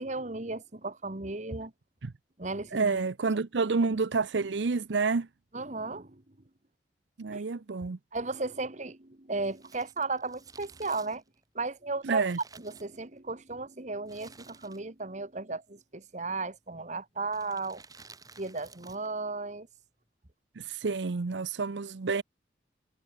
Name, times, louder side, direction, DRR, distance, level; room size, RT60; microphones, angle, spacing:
voice 1, 0.0-1.7 2.4-3.0 3.9-4.0 5.5-6.2 7.3-7.4 8.1-11.2 11.5-12.3 12.5-17.8 18.4-19.7, right 3 dB, 40° right, 1.6 m, -35 dB
voice 2, 2.7-5.3 7.2-8.0 12.0-12.4 20.6-22.2, right 4 dB, 85° right, 0.7 m, -29 dB
Crumpling crinkling, 9.4-13.4 14.0-15.1 15.3-15.4 16.3-16.6 17.3-19.2 19.4-19.5, right 4 dB, 20° right, 7.6 m, -54 dB
head